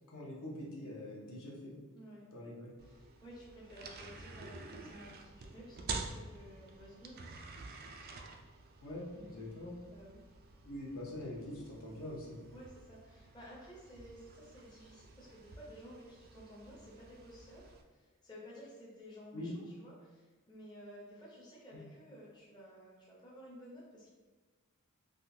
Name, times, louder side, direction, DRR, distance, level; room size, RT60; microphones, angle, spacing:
voice 1, 0.1-1.7 2.3-2.7 8.8-9.7 10.6-12.4 19.3-19.5, left 1 dB, 65° left, -3 dB, 0.8 m, -44 dB
voice 2, 1.9-2.2 2.8-7.4 9.1-9.3 9.9-10.2 12.5-24.1, equal, 20° left, -6 dB, 0.6 m, -54 dB
sound 1, 2.8-17.8, right 4 dB, 45° right, 0.3 m, -49 dB
3.5 x 2.5 x 2.6 m, 1.3 s
head